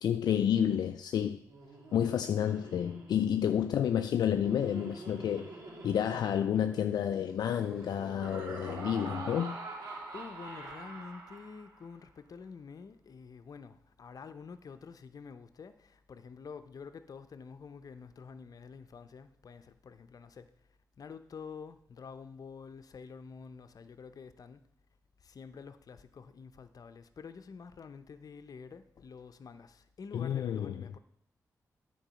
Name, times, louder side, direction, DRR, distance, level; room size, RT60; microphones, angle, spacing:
voice 1, 0.0-1.4 1.9-5.5 5.8-9.6 30.1-30.8, left 9 dB, 80° left, 0.4 m, -30 dB
Laughter, 1.4-11.8, right 3 dB, 70° right, 3.2 m, -46 dB
voice 2, 10.1-20.5 21.0-24.6 25.2-31.0, left 5 dB, 60° left, 0.7 m, -48 dB
9.0 x 4.6 x 6.9 m
cardioid pair, 50°, 7 cm